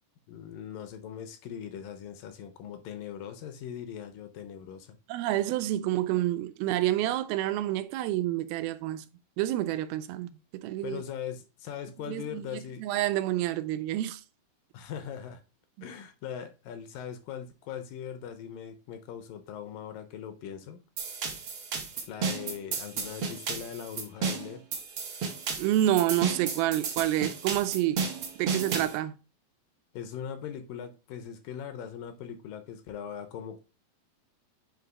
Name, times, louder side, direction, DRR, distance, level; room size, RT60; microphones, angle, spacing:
voice 1, 0.3-5.0 10.8-12.9 14.7-15.4 15.8-20.8 22.1-24.6 29.9-33.6, left 8 dB, 75° left, 2.2 m, -40 dB
voice 2, 5.1-9.0 9.4-10.3 10.6-11.0 12.1-14.2 25.6-28.0 28.4-29.1, right 14 dB, 90° right, 2.4 m, -28 dB
sound 1, 21.0-29.0, right 5 dB, 70° right, 1.2 m, -33 dB
7.8 x 2.9 x 4.8 m
omnidirectional pair, 4.3 m